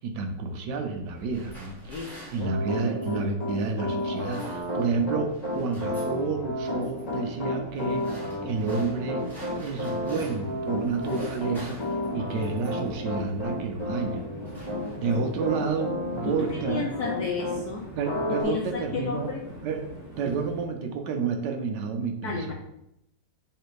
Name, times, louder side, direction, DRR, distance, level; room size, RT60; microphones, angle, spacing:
voice 1, 0.0-5.3 5.5-9.2 9.6-11.8 12.1-14.2 15.0-16.9 17.9-19.3 19.6-19.8 20.2-22.5, right 4 dB, 75° right, 4 dB, 1.1 m, -30 dB
Train, 0.7-20.6, right 1 dB, 45° left, 1.4 m, -44 dB
sound 1, 1.1-3.3 4.0-5.0 5.3-6.2 6.6-7.0 7.7-10.6 10.8-12.9 13.7-13.9 14.2-15.3, equal, ahead, 1.1 m, -49 dB
Piano, 2.4-17.6 18.0-18.4, left 1 dB, 25° left, 1.0 m, -32 dB
voice 2, 16.2-17.9 18.3-19.4 20.2-20.4 22.2-22.5, left 5 dB, 80° left, 0 dB, 0.8 m, -32 dB
3.3 x 3.3 x 4.6 m, 0.81 s
omnidirectional pair, 2.2 m